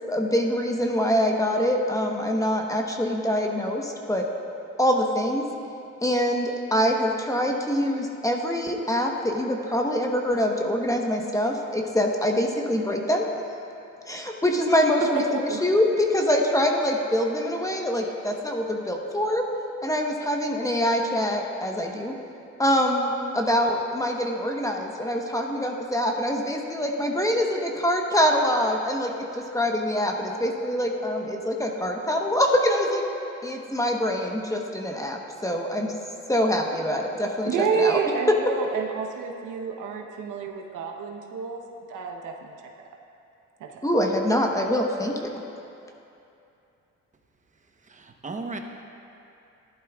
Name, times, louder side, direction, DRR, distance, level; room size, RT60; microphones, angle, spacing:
voice 1, 0.1-4.2 4.8-5.5 6.0-13.3 14.1-19.5 19.8-22.1 22.6-33.0 33.4-35.9 36.3-38.0 38.3-38.4 43.8-45.3, equal, 10° left, 1 dB, 1.1 m, -24 dB
voice 2, 15.0-15.6 37.4-41.6 41.9-42.5 43.6-43.8, right 5 dB, 85° right, 2 dB, 1.0 m, -28 dB
voice 3, 47.9-48.6, right 3 dB, 25° right, 3 dB, 1.0 m, -35 dB
14.5 x 11.5 x 2.4 m, 2.8 s
cardioid pair, 90°, 30 cm